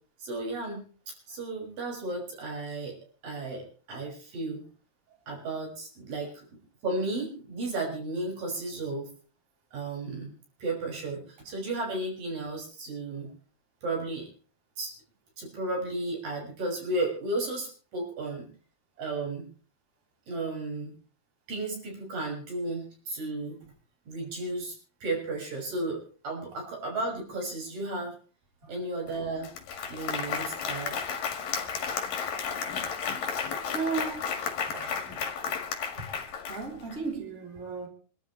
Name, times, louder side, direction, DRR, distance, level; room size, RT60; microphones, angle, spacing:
voice 1, 0.2-3.0 3.2-4.6 5.3-6.4 6.8-9.1 9.7-10.3 10.6-13.3 13.8-14.3 14.8-14.9 15.4-18.5 19.0-19.5 20.3-20.9 21.5-23.6 24.1-24.8 25.0-28.1 28.7-29.5 29.9-31.0, right 2 dB, 85° right, 8.1 m, -34 dB
Applause, 29.1-29.2 29.4-37.0, left 6 dB, 85° left, 3.7 m, -33 dB
voice 2, 33.7-34.3 34.7-35.0 36.0-36.1 36.5-37.9, right 4 dB, 20° right, 3.6 m, -35 dB
27.0 x 13.0 x 3.3 m
omnidirectional pair, 3.8 m